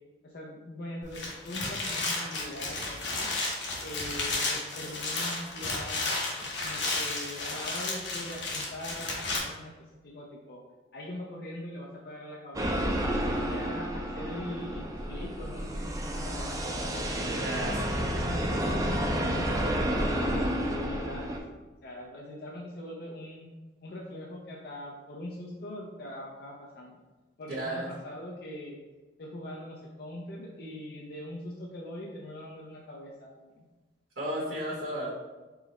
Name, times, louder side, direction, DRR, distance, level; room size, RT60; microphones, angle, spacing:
voice 1, 0.2-3.3 3.8-6.2 6.6-9.7 10.0-10.6 10.9-12.8 13.2-16.7 17.2-20.4 20.7-21.5 21.8-23.5 23.8-27.0 27.4-28.8 29.2-33.6, left 1 dB, 55° left, -2 dB, 0.4 m, -42 dB
sound 1, 1.0-9.4, left 3 dB, 80° left, 1.0 m, -33 dB
sound 2, 12.5-21.4, equal, 20° right, 0.3 m, -30 dB
voice 2, 17.4-17.7 27.5-27.8 34.2-35.1, right 1 dB, 80° right, -9 dB, 1.2 m, -33 dB
4.6 x 2.0 x 4.1 m, 1.3 s
head